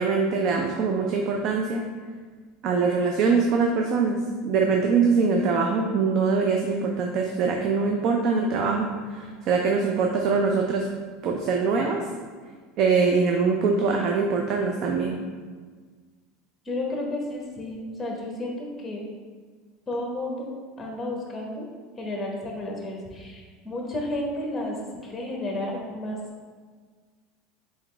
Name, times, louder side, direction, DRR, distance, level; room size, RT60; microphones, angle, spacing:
voice 1, 0.0-1.8 2.6-10.9 11.2-12.0 12.8-15.2, right 4 dB, 45° right, 2 dB, 0.4 m, -23 dB
voice 2, 16.6-19.0 19.9-21.6 22.0-26.2, left 1 dB, 15° left, -1 dB, 0.9 m, -32 dB
4.0 x 4.0 x 3.3 m, 1.5 s
supercardioid pair, 150°, 0 cm